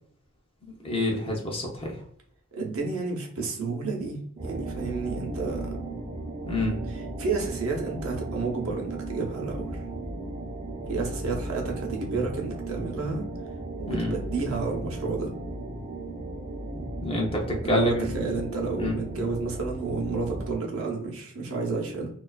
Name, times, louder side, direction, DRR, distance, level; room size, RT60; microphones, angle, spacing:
voice 1, 0.8-1.9 6.5-6.8 13.9-14.1 17.0-18.3 18.8-19.0, left 1 dB, 25° left, 0 dB, 0.5 m, -27 dB
voice 2, 2.5-4.2 4.4-5.7 6.9-9.8 10.9-13.3 13.8-15.3 17.6-22.1, right 4 dB, 70° right, 0 dB, 0.7 m, -30 dB
sound 1, 4.4-20.6, right 1 dB, 30° right, 0.5 m, -36 dB
2.4 x 2.3 x 2.2 m, 0.63 s
head